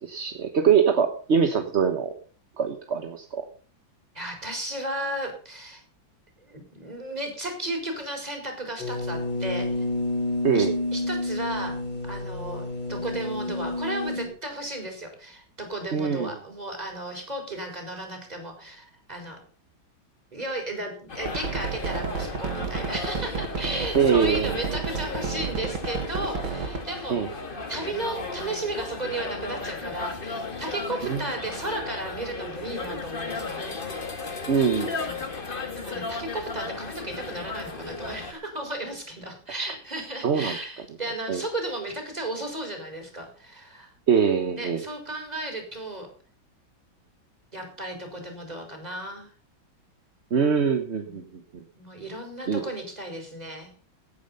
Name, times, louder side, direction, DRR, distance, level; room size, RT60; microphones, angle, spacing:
voice 1, 0.0-2.1 2.6-3.4 10.4-10.7 15.9-16.3 23.9-24.5 27.1-27.3 31.0-31.2 34.5-34.9 39.6-39.7 40.2-40.6 41.3-41.4 44.1-44.8 50.3-51.4 52.5-52.6, right 6 dB, 40° right, 6 dB, 1.2 m, -23 dB
voice 2, 4.1-5.8 6.5-9.8 10.5-11.7 12.0-19.4 20.3-27.4 27.7-34.2 35.0-35.3 35.7-43.9 44.5-46.1 47.5-49.3 51.7-53.7, right 1 dB, 20° right, 3 dB, 4.7 m, -34 dB
sound 1, 8.8-14.3, left 2 dB, 70° left, 4.4 m, -29 dB
sound 2, 21.1-38.3, left 3 dB, 30° left, 1.7 m, -35 dB
sound 3, 21.3-26.8, right 5 dB, 80° right, 2.7 m, -31 dB
16.5 x 9.2 x 5.5 m, 0.42 s
omnidirectional pair, 2.2 m